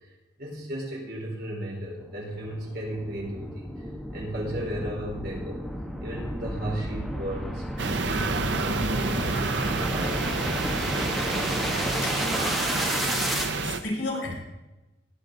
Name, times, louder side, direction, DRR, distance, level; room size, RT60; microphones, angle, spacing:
voice 1, 0.4-3.7 4.1-5.6 6.0-7.6 8.0-10.5, right 1 dB, 60° right, -3 dB, 4.5 m, -35 dB
sound 1, 2.0-13.5, equal, ahead, 1.2 m, -32 dB
sound 2, 7.8-13.8, right 4 dB, 75° right, 0.9 m, -29 dB
voice 2, 12.0-13.0 13.6-14.3, left 2 dB, 80° left, -1 dB, 5.1 m, -34 dB
20.0 x 8.4 x 3.9 m, 1.0 s
head